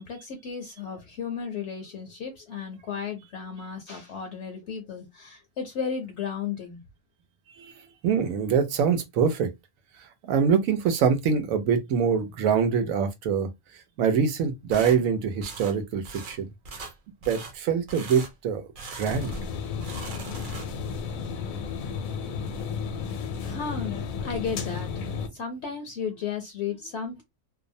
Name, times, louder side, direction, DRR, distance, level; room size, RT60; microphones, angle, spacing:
voice 1, 0.0-6.8 23.4-24.9 25.3-27.2, left 6 dB, 65° left, 0.8 m, -34 dB
voice 2, 8.0-9.5 10.0-13.5 14.0-16.5 17.3-18.6 18.9-19.4, right 6 dB, 85° right, 1.0 m, -24 dB
sound 1, 14.7-15.0 15.4-15.8 16.0-16.4 16.6-16.9 17.2-17.5 17.9-18.3 18.7-19.5 19.7-20.9, right 4 dB, 50° right, 0.7 m, -40 dB
sound 2, 19.1-25.3, left 5 dB, 80° left, 1.0 m, -33 dB
2.7 x 2.0 x 2.5 m
omnidirectional pair, 1.4 m